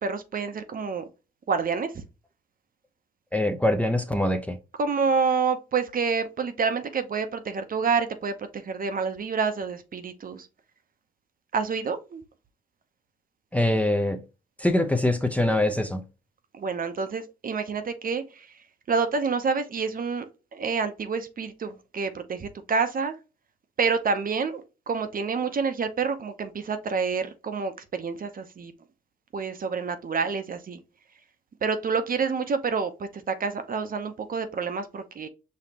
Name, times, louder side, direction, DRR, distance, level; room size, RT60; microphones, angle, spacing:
voice 1, 0.0-1.1 1.5-1.9 4.8-10.5 11.5-12.2 16.6-18.5 18.9-23.1 23.8-28.7 29.3-30.8 31.6-35.3, right 5 dB, 45° right, 0.7 m, -28 dB
voice 2, 3.3-4.6 13.5-14.2 14.6-16.0, left 1 dB, 5° left, 0.6 m, -23 dB
5.2 x 2.8 x 2.8 m
supercardioid pair, 65°, 20 cm